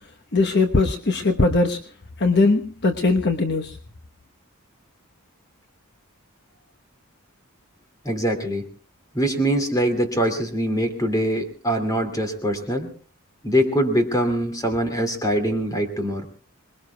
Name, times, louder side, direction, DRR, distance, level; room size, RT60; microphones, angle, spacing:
voice 1, 0.3-1.8 2.2-3.8, left 3 dB, 50° left, 6 dB, 1.1 m, -20 dB
voice 2, 8.0-8.7 9.1-12.9 13.4-16.3, equal, 15° left, 6 dB, 2.5 m, -23 dB
26.0 x 21.0 x 2.3 m, 0.38 s
head